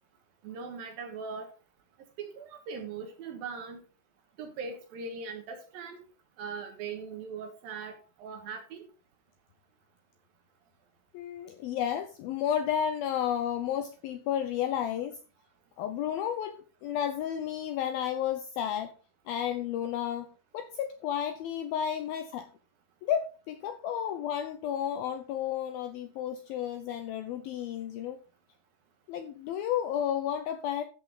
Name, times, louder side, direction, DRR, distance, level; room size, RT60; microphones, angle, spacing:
voice 1, 0.4-1.5 2.2-3.8 4.4-6.0 6.4-8.8, right 5 dB, 65° right, 5 dB, 2.8 m, -40 dB
voice 2, 11.1-15.2 15.8-18.9 19.3-20.3 20.5-22.5 23.0-28.2 29.1-30.8, left 9 dB, 80° left, 9 dB, 2.2 m, -32 dB
13.5 x 7.2 x 3.9 m, 0.35 s
omnidirectional pair, 5.1 m